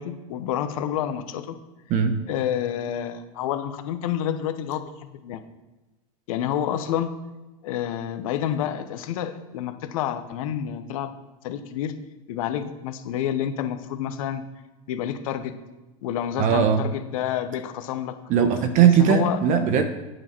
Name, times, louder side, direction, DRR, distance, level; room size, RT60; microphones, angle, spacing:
voice 1, 0.0-1.6 2.3-5.4 6.3-7.1 7.6-11.1 11.4-11.9 12.3-14.4 14.9-15.5 16.0-18.2 19.0-19.4, left 10 dB, 65° left, 9 dB, 1.0 m, -29 dB
voice 2, 16.4-16.8 18.3-19.9, right 8 dB, 45° right, 8 dB, 0.9 m, -19 dB
8.8 x 6.3 x 4.5 m, 1.1 s
hypercardioid pair, 110°, 19 cm